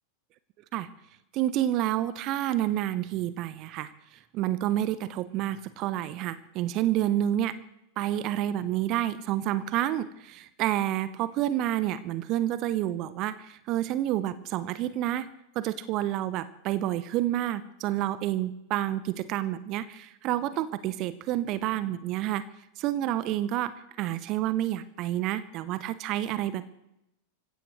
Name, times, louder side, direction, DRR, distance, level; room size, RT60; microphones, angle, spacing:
voice 1, 1.3-3.9 4.3-7.6 8.0-15.3 15.5-22.5 22.8-26.6, right 13 dB, 40° right, 15 dB, 0.8 m, -29 dB
28.0 x 16.0 x 3.2 m, 0.85 s
figure-of-eight pair, 90°, 0 cm